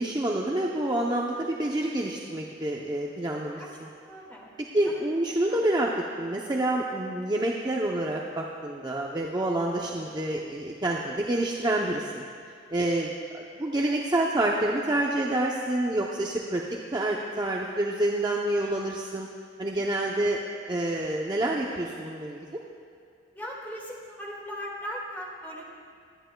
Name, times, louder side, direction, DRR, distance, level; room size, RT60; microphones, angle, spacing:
voice 1, 0.0-3.6 4.7-5.9 6.2-12.2 12.7-16.6 16.9-19.3 19.6-20.4 20.7-22.6, right 1 dB, 20° right, -2 dB, 0.6 m, -28 dB
voice 2, 4.0-4.5 4.8-5.6 23.3-25.6, equal, 10° left, -3 dB, 1.8 m, -39 dB
23.5 x 10.0 x 2.2 m, 2.3 s
head